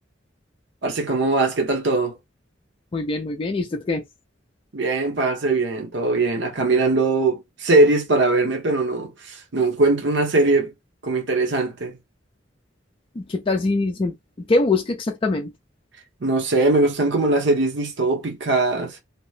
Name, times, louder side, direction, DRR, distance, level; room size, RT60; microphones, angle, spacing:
voice 1, 0.8-2.2 4.7-10.7 11.0-11.9 16.2-19.0, right 2 dB, 65° right, 0.9 m, -21 dB
voice 2, 2.9-4.0 13.2-15.5, left 3 dB, 30° left, 0.4 m, -23 dB
2.8 x 2.1 x 3.1 m
head